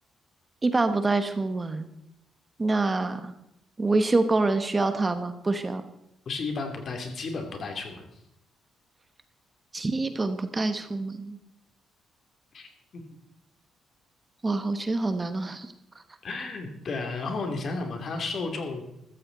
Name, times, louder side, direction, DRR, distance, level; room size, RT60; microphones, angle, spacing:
voice 1, 0.6-1.9 2.6-3.3 3.8-5.8 9.7-11.4 14.4-15.7, right 3 dB, 25° right, 9 dB, 1.2 m, -26 dB
voice 2, 6.3-8.1 12.5-12.7 16.2-18.8, left 3 dB, 50° left, 4 dB, 2.8 m, -33 dB
14.5 x 13.5 x 4.0 m, 0.83 s
cardioid pair, 90°, 0 cm